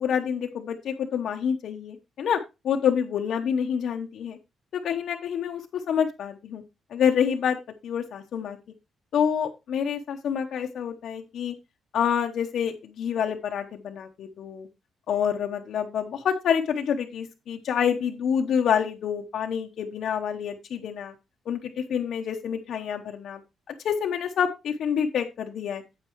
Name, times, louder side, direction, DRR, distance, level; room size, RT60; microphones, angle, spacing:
voice 1, 0.0-2.4 2.6-4.4 4.7-6.6 6.9-7.6 7.8-8.6 9.1-11.5 11.9-14.7 15.1-21.1 21.5-23.4 23.8-25.8, left 8 dB, 65° left, 3 dB, 0.8 m, -27 dB
8.9 x 8.1 x 3.0 m, 0.25 s
cardioid pair, 150°, 0 cm